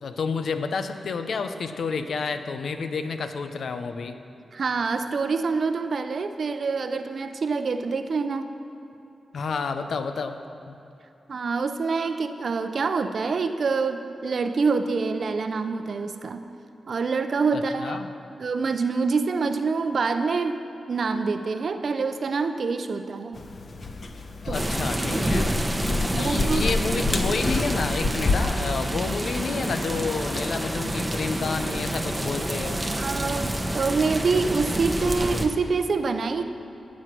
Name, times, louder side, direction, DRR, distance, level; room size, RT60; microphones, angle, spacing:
voice 1, 0.0-4.2 9.3-10.4 10.7-10.8 17.5-18.1 24.4-25.6 26.1-32.8, left 5 dB, 75° left, 8 dB, 0.7 m, -30 dB
voice 2, 4.5-8.5 11.3-16.4 16.9-18.0 18.4-23.4 24.5-24.6 25.0-25.6 26.1-26.7 28.4-28.5 33.0-36.4, right 4 dB, 65° right, 8 dB, 0.6 m, -26 dB
sound 1, 23.3-28.4, left 3 dB, 55° left, 0.9 m, -28 dB
sound 2, 24.5-35.5, right 1 dB, 15° right, 1.0 m, -28 dB
16.5 x 6.3 x 6.1 m, 2.8 s
cardioid pair, 65°, 0 cm